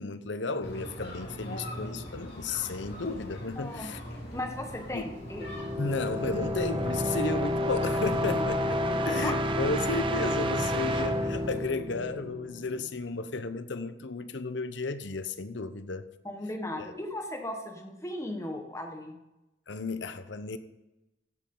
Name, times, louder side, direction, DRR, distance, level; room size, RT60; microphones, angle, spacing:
voice 1, 0.0-4.0 4.9-5.0 5.8-8.8 9.1-16.1 16.8-16.9 19.7-20.6, left 3 dB, 75° left, 0.8 m, -33 dB
sound 1, 0.6-11.6, left 1 dB, 55° left, 3.9 m, -41 dB
voice 2, 3.6-3.9 4.3-5.6 8.2-9.3 16.2-19.2, left 1 dB, 15° left, 1.4 m, -37 dB
sound 2, 5.2-12.9, equal, 25° right, 0.8 m, -30 dB
16.0 x 9.4 x 3.9 m
head